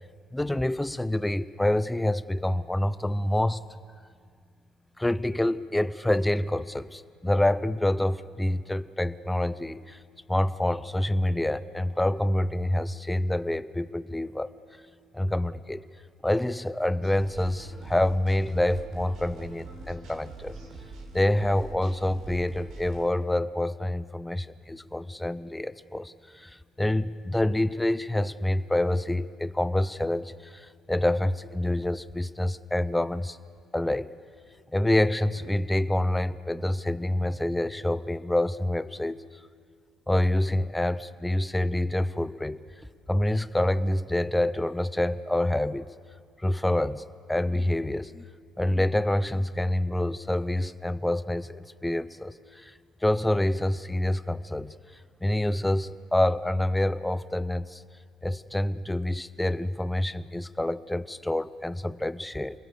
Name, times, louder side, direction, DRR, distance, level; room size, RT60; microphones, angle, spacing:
voice 1, 0.3-3.6 5.0-10.0 10.3-14.5 15.1-15.8 16.2-20.6 21.1-33.4 33.7-34.1 34.7-39.2 40.1-42.6 43.1-45.9 46.4-48.2 48.6-52.7 53.0-54.7 55.2-57.8 58.2-62.6, left 1 dB, 5° left, 15 dB, 0.6 m, -27 dB
sound 1, 17.0-23.1, right 3 dB, 75° right, 4.2 m, -43 dB
28.0 x 21.0 x 6.9 m, 2.1 s
cardioid pair, 130°, 0 cm